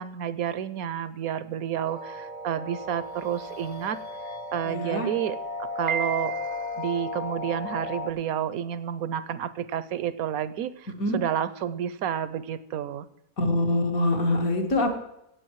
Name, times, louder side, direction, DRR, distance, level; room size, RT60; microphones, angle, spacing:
voice 1, 0.0-4.0 4.5-6.3 6.8-13.1, right 9 dB, 70° right, 15 dB, 1.1 m, -30 dB
sound 1, 1.8-8.1, left 2 dB, 35° left, 0.9 m, -35 dB
voice 2, 4.7-5.1 11.0-11.2 13.4-14.9, left 1 dB, 60° left, 3 dB, 2.3 m, -24 dB
Piano, 5.9-6.9, right 8 dB, 40° right, 0.6 m, -33 dB
16.5 x 8.1 x 4.7 m, 0.82 s
omnidirectional pair, 1.7 m